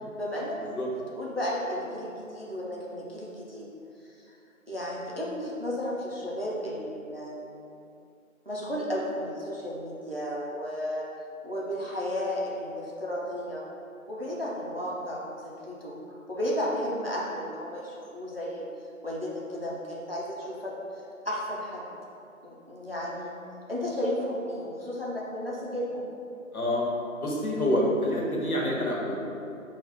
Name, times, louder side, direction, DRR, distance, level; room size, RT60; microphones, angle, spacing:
voice 1, 0.2-0.6 1.2-3.7 4.3-4.4 4.7-7.4 8.5-11.1 11.4-13.6 14.1-16.0 16.3-18.7 19.0-20.7 21.2-21.8 22.4-23.3 23.7-26.0, equal, 45° right, -5 dB, 0.5 m, -33 dB
voice 2, 26.5-26.8 27.2-29.2, left 1 dB, 85° left, -3 dB, 1.2 m, -27 dB
4.7 x 2.3 x 3.6 m, 2.7 s
figure-of-eight pair, 180°, 43 cm